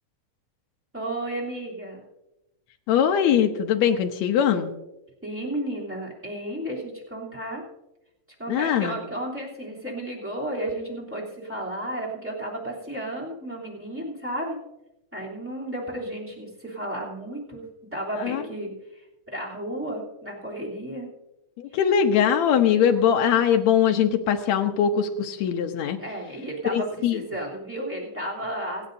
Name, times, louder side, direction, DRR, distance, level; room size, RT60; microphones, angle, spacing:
voice 1, 0.9-2.0 5.2-7.6 8.4-14.6 15.1-17.6 17.9-21.1 23.2-23.4 26.0-28.9, right 1 dB, 5° right, -5 dB, 2.6 m, -33 dB
voice 2, 2.9-4.7 8.5-9.0 18.2-18.4 21.6-26.0 26.7-27.2, left 8 dB, 75° left, 5 dB, 1.7 m, -21 dB
27.5 x 9.3 x 2.7 m, 0.95 s
omnidirectional pair, 4.1 m